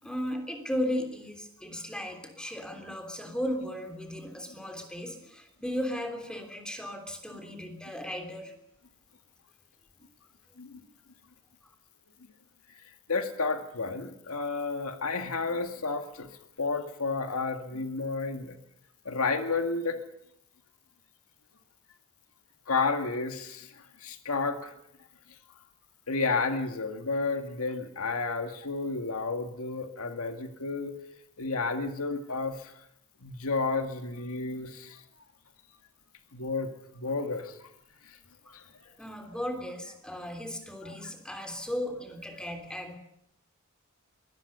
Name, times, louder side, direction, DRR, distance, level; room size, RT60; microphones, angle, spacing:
voice 1, 0.0-8.5 38.5-38.6 39.0-43.0, equal, 5° left, 4 dB, 3.2 m, -36 dB
voice 2, 13.1-16.3 16.6-18.6 19.1-20.0 22.7-24.7 26.1-31.0 31.4-32.7 33.2-35.0 36.3-37.7 38.1-38.2 38.5-38.6 41.0-41.1, left 4 dB, 90° left, 6 dB, 2.0 m, -31 dB
23.0 x 18.0 x 6.8 m, 0.77 s
head